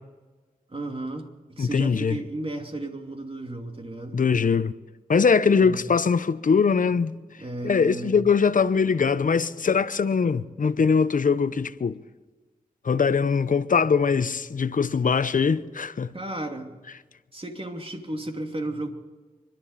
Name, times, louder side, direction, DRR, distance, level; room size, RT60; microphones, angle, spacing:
voice 1, 0.7-4.2 5.6-5.8 7.4-8.2 16.1-16.7 17.3-18.9, right 2 dB, 40° right, 2.7 m, -34 dB
voice 2, 1.6-2.2 4.1-4.7 5.1-7.1 7.6-12.0 12.8-16.1, left 5 dB, 60° left, 0.8 m, -22 dB
25.5 x 12.0 x 4.2 m
cardioid pair, 50°, 15 cm